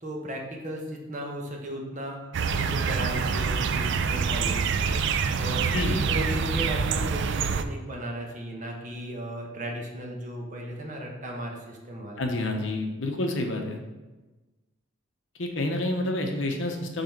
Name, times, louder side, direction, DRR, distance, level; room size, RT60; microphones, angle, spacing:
voice 1, 0.0-5.0 5.4-12.3, equal, 40° right, 0 dB, 1.2 m, -35 dB
sound 1, 2.3-7.6, right 5 dB, 65° right, 0.4 m, -26 dB
voice 2, 12.2-13.8 15.4-17.0, left 2 dB, 70° left, 3 dB, 0.9 m, -28 dB
5.4 x 4.0 x 5.9 m, 1.2 s
head